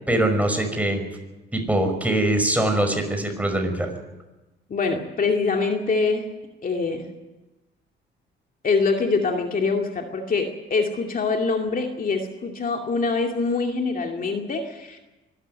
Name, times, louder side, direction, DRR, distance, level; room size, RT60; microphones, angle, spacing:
voice 1, 0.1-1.0 1.5-3.9, right 1 dB, 5° right, 5 dB, 5.5 m, -22 dB
voice 2, 4.7-6.3 6.6-7.0 8.6-15.0, left 4 dB, 45° left, 3 dB, 2.5 m, -24 dB
24.5 x 13.5 x 9.2 m, 1.1 s
cardioid pair, 90°, 20 cm